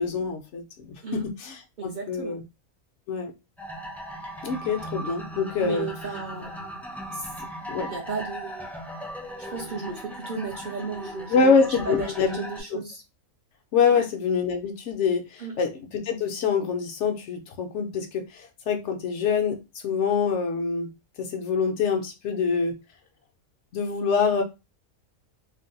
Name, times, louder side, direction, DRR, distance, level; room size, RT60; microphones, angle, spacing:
voice 1, 0.0-2.4 3.1-3.3 4.4-5.9 7.7-7.9 11.3-12.4 13.7-20.9 21.2-22.8 23.7-24.4, left 5 dB, 65° left, 4 dB, 0.8 m, -25 dB
voice 2, 1.8-2.4 5.6-6.5 7.1-7.3 7.9-8.7 9.4-13.0 13.9-14.1 15.4-15.6, right 5 dB, 65° right, 1 dB, 0.4 m, -35 dB
sound 1, 3.6-12.6, right 1 dB, ahead, 0.4 m, -38 dB
2.6 x 2.2 x 3.7 m, 0.26 s
omnidirectional pair, 1.4 m